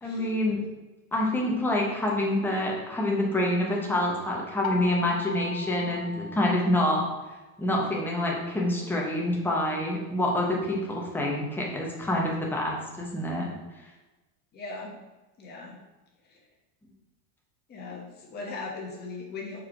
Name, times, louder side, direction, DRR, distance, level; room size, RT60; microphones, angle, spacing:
voice 1, 0.0-0.6 1.1-7.0 7.6-13.5, left 1 dB, 5° left, -3 dB, 0.9 m, -27 dB
sound 1, 4.6-7.4, left 4 dB, 75° left, 0.7 m, -38 dB
voice 2, 14.5-14.9 15.4-15.8 16.3-16.4 17.7-19.6, left 3 dB, 20° left, -2 dB, 1.3 m, -39 dB
4.8 x 4.6 x 5.9 m, 1.1 s
cardioid pair, 175°, 45 cm